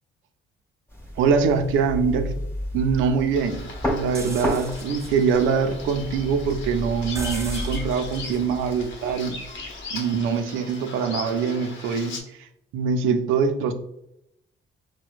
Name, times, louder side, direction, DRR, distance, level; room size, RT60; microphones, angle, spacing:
sound 1, 0.9-7.8, equal, 15° left, 1.5 m, -33 dB
voice 1, 1.2-2.3 2.7-9.4 9.9-13.7, right 5 dB, 90° right, 8 dB, 0.4 m, -24 dB
Bird vocalization bird call bird song, 3.3-12.2, left 3 dB, 70° left, 0.9 m, -39 dB
sound 2, 4.1-9.9, right 1 dB, 15° right, 0.5 m, -36 dB
4.3 x 2.1 x 2.4 m, 0.80 s
cardioid pair, 90°, 20 cm